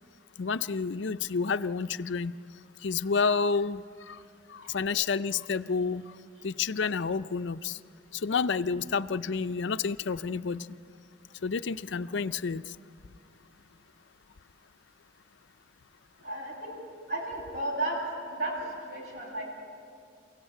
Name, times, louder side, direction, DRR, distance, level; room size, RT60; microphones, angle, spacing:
voice 1, 0.4-2.3 2.8-4.2 4.5-6.0 6.4-7.8 8.1-10.7 11.4-12.7, left 5 dB, 65° left, 11 dB, 0.5 m, -29 dB
voice 2, 16.2-16.8 17.1-18.0 18.2-19.5, right 1 dB, 50° right, -4 dB, 7.3 m, -34 dB
29.5 x 16.5 x 9.0 m, 2.4 s
head